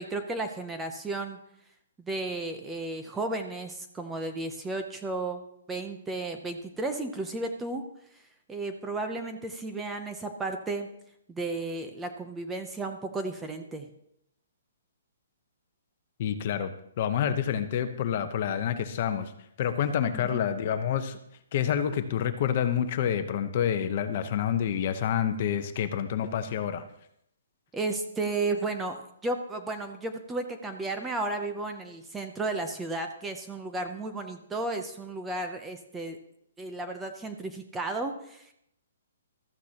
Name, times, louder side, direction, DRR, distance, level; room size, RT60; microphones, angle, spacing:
voice 1, 0.0-1.4 2.0-5.4 5.7-7.8 8.1-8.2 8.5-10.9 11.3-13.9 20.1-20.4 27.7-36.2 36.6-38.5, right 2 dB, 5° right, 5 dB, 0.6 m, -33 dB
voice 2, 16.2-19.3 19.6-21.2 21.5-26.8, left 9 dB, 35° left, 9 dB, 0.9 m, -28 dB
16.0 x 13.5 x 2.9 m, 0.74 s
hypercardioid pair, 170°, 0 cm